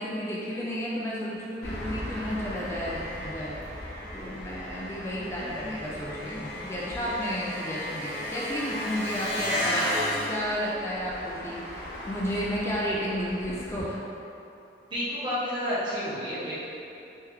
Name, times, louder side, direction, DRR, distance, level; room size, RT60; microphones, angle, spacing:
voice 1, 0.0-3.6 4.1-14.0, equal, 15° left, -6 dB, 0.3 m, -32 dB
Engine, 1.6-13.8, left 1 dB, 65° left, 0.9 m, -35 dB
voice 2, 14.9-16.6, equal, 25° right, -11 dB, 0.7 m, -30 dB
3.5 x 3.3 x 3.0 m, 2.8 s
head